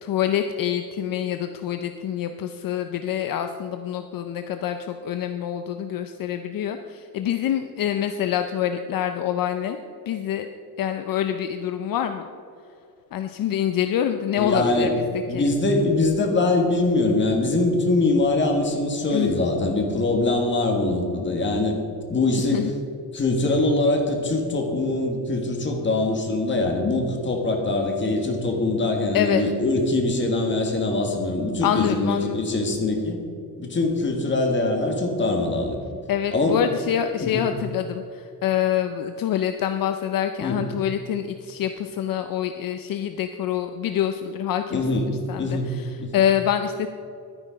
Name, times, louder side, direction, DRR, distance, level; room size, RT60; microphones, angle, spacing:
voice 1, 0.0-9.8 10.1-10.5 10.8-12.3 13.1-15.5 19.1-19.4 22.4-22.7 29.1-29.4 31.6-32.4 36.1-46.9, left 10 dB, 65° left, 7 dB, 0.6 m, -26 dB
voice 2, 14.4-15.0 15.3-21.8 22.1-22.7 23.1-33.2 33.6-35.8 36.3-36.7 37.2-37.5 40.4-40.6 44.7-45.7 46.0-46.1, left 2 dB, 30° left, 2 dB, 1.7 m, -23 dB
11.5 x 9.9 x 5.0 m, 2.5 s
cardioid pair, 150°, 37 cm